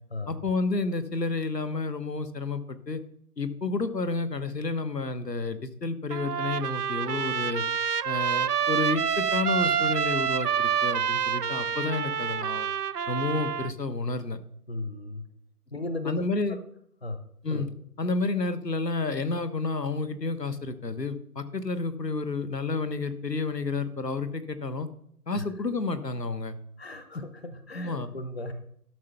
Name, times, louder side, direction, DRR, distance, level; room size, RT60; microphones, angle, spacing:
voice 1, 0.3-3.0 3.4-7.6 8.0-12.7 13.1-14.4 16.0-16.6 17.4-17.7 18.0-24.9 25.3-26.6 27.1-27.2 27.7-28.1, left 3 dB, 90° left, 11 dB, 1.3 m, -30 dB
Trumpet, 6.1-13.7, right 8 dB, 75° right, 0.5 m, -27 dB
voice 2, 14.7-15.2 15.7-16.2 17.0-17.2 17.5-17.6 25.4-25.5 26.8-28.5, left 2 dB, 40° left, 9 dB, 0.8 m, -36 dB
12.5 x 5.6 x 5.8 m, 0.70 s
figure-of-eight pair, 165°, 48 cm